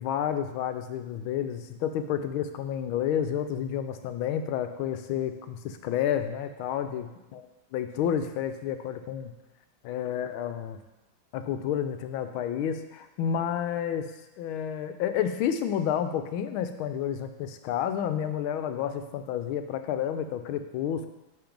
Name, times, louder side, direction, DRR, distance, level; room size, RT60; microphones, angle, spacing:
voice 1, 0.0-7.4 7.7-9.3 9.8-10.8 11.3-21.1, left 9 dB, 90° left, 8 dB, 1.5 m, -30 dB
10.5 x 3.7 x 5.2 m, 1.0 s
omnidirectional pair, 2.2 m